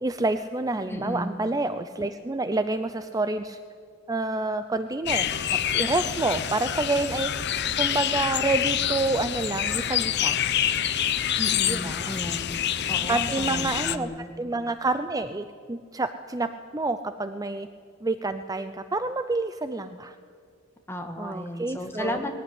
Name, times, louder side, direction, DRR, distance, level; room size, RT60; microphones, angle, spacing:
voice 1, 0.0-3.6 4.1-7.3 7.8-10.4 11.7-12.1 13.1-17.7 18.0-20.2 21.2-22.2, right 2 dB, 15° right, 10 dB, 0.6 m, -28 dB
voice 2, 0.9-1.4 11.4-12.6 12.9-14.3 20.9-22.3, equal, 10° left, 4 dB, 2.1 m, -34 dB
sound 1, 5.1-14.0, left 10 dB, 55° left, 0.8 m, -27 dB
21.0 x 17.0 x 9.9 m, 2.3 s
head